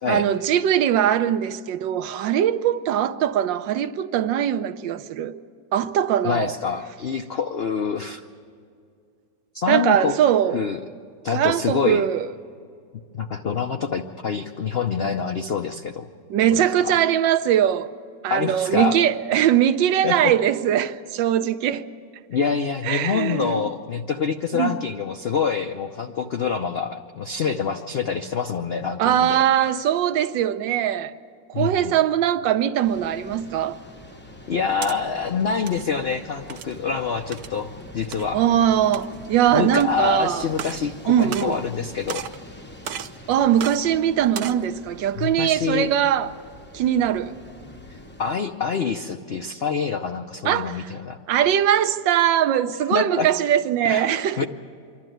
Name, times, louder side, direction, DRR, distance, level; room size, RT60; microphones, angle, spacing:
voice 1, 0.1-5.3 5.7-6.5 9.7-10.6 11.3-12.3 16.3-17.9 18.2-21.9 22.8-23.7 24.5-24.8 29.0-31.1 31.5-33.8 38.3-40.5 41.1-41.6 43.3-46.3 46.7-47.3 50.4-50.9 51.3-54.5, right 10 dB, 90° right, 1.4 m, -21 dB
voice 2, 6.2-8.2 9.5-10.1 10.5-10.8 11.2-12.0 13.1-16.1 16.5-17.0 18.3-19.0 20.0-20.3 22.3-29.4 31.5-31.9 34.5-38.4 39.5-42.3 45.2-45.9 48.2-51.2 52.9-53.3 53.8-54.1 54.4-54.5, left 6 dB, 75° left, 0.5 m, -26 dB
sound 1, 32.8-48.4, left 1 dB, 15° left, 0.4 m, -44 dB
sound 2, 34.4-35.0 35.5-35.8 36.5-36.8 37.3-37.6 38.1-38.2 38.8-39.3 39.8-39.9 40.5-40.9 41.2-41.8 42.1-42.4 42.8-43.2 43.6-43.8 44.2-44.6, right 9 dB, 65° right, 1.1 m, -34 dB
26.0 x 12.0 x 9.2 m
omnidirectional pair, 1.9 m